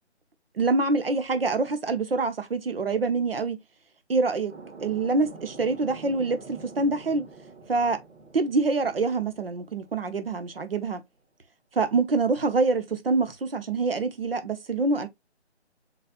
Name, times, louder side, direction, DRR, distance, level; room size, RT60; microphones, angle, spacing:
voice 1, 0.6-3.6 4.1-4.5 4.8-7.3 7.7-8.0 8.3-11.0 11.7-15.1, right 3 dB, 55° right, 0.9 m, -25 dB
sound 1, 4.5-10.8, right 4 dB, 90° right, 2.2 m, -47 dB
4.1 x 4.1 x 2.4 m
figure-of-eight pair, 175°, 34 cm